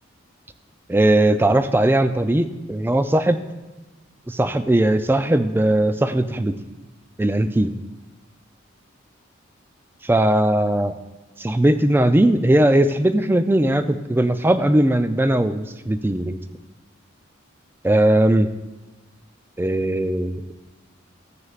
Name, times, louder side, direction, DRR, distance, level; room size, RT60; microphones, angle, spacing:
voice 1, 0.9-3.4 4.3-6.5 7.2-7.7 10.0-11.0 11.4-16.4 17.8-18.5 19.6-20.4, right 1 dB, 10° right, 10 dB, 0.3 m, -19 dB
15.0 x 9.6 x 2.4 m, 1.2 s
head